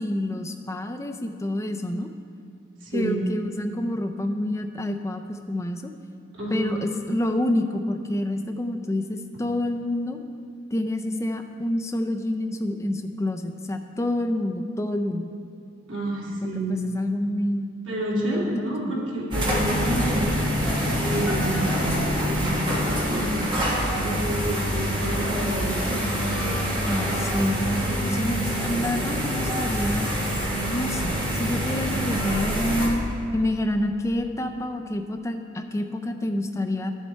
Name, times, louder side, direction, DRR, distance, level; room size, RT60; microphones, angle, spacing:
voice 1, 0.0-2.1 2.9-5.9 6.5-10.2 10.7-15.3 16.7-17.7 18.1-19.0 26.8-30.1 30.7-33.0 33.3-36.9, left 1 dB, 15° left, 5 dB, 0.4 m, -28 dB
voice 2, 2.8-3.3 6.3-6.8 15.9-16.9 17.9-20.4 21.0-23.5 23.9-26.1, right 1 dB, 85° right, -5 dB, 2.4 m, -29 dB
sound 1, 19.3-32.9, equal, 25° right, 1.4 m, -26 dB
11.0 x 7.3 x 4.5 m, 2.5 s
head